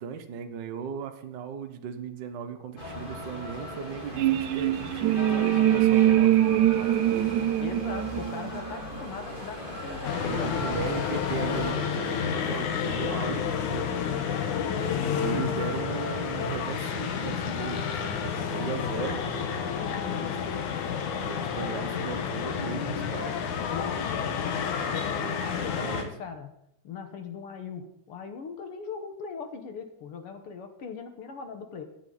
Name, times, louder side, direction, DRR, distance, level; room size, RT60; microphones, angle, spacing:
voice 1, 0.0-7.4 10.2-14.0 15.2-19.3 19.9-20.3 21.2-23.4 25.2-26.1, right 7 dB, 60° right, 7 dB, 1.2 m, -37 dB
sound 1, 2.8-11.7, left 1 dB, 20° left, 2.0 m, -38 dB
sound 2, 4.2-9.0, right 13 dB, 90° right, 2.1 m, -23 dB
voice 2, 7.6-11.5 14.0-15.7 19.7-20.6 23.7-26.5 26.8-31.8, left 6 dB, 55° left, 6 dB, 1.9 m, -40 dB
sound 3, 10.0-26.0, left 7 dB, 90° left, 2.7 m, -30 dB
22.0 x 8.8 x 4.0 m, 0.77 s
omnidirectional pair, 3.4 m